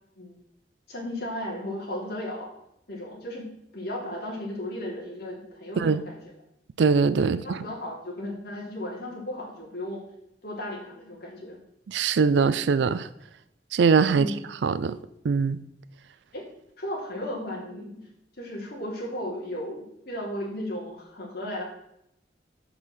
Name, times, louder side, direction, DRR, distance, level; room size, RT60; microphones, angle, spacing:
voice 1, 0.9-2.5 2.9-3.4 3.7-6.2 7.2-10.0 10.4-11.6 14.1-14.3 16.3-16.4 16.8-18.0 18.4-21.6, left 1 dB, 60° left, 3.0 m, -35 dB
voice 2, 6.8-7.6 11.9-13.1 13.7-14.3 14.6-15.0 15.2-15.6, right 5 dB, 75° right, 0.4 m, -22 dB
6.9 x 5.6 x 6.1 m
head